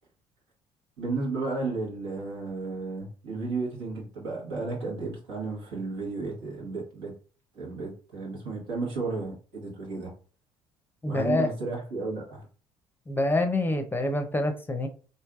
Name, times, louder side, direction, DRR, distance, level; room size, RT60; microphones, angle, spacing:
voice 1, 1.0-7.1 7.5-10.1 11.0-12.5, right 3 dB, 85° right, -3 dB, 1.3 m, -33 dB
voice 2, 11.0-11.5 13.1-14.9, left 2 dB, 15° left, 7 dB, 0.5 m, -26 dB
3.2 x 2.6 x 2.3 m, 0.38 s
supercardioid pair, 70°, 13 cm